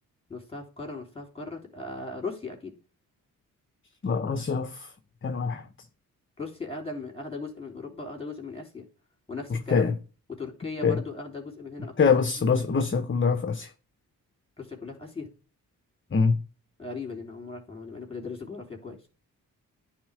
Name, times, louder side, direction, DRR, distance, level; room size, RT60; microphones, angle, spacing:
voice 1, 0.3-2.8 6.4-8.8 9.3-9.9 10.4-12.1 14.6-15.3 16.8-19.0, left 3 dB, 15° left, 3.3 m, -38 dB
voice 2, 4.0-4.9 5.2-5.7 9.5-9.9 10.8-11.0 12.0-13.7 16.1-16.4, left 5 dB, 30° left, 0.8 m, -24 dB
10.0 x 3.7 x 3.5 m
supercardioid pair, 50°, 38 cm